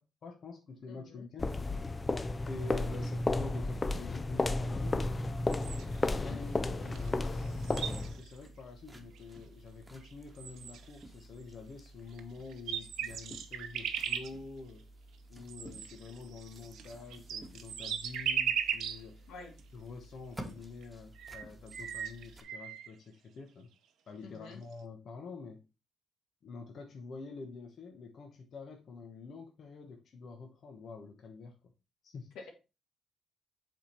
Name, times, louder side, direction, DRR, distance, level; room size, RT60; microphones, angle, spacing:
voice 1, 0.0-1.5 2.4-5.1 6.1-14.9 15.3-19.2 19.7-23.7 24.1-25.6 26.4-31.7 32.0-32.4, left 4 dB, 55° left, 3 dB, 1.1 m, -47 dB
voice 2, 0.9-1.3 6.0-6.4 19.3-19.6 24.2-24.6 32.4-32.5, left 4 dB, 90° left, 2 dB, 1.9 m, -48 dB
sound 1, 1.4-8.2, left 2 dB, 25° left, 0.5 m, -33 dB
sound 2, 4.9-22.4, right 1 dB, 15° right, 1.3 m, -53 dB
sound 3, 5.5-6.1 7.0-7.1 7.3-8.4 9.2-9.3 10.0-10.1 10.4-11.0 12.1-12.2 12.5-14.3 15.5-19.0 19.6-19.7 20.8-20.9 21.2-22.9, right 9 dB, 80° right, 0.8 m, -37 dB
7.7 x 3.7 x 4.3 m, 0.30 s
cardioid pair, 90°, 0 cm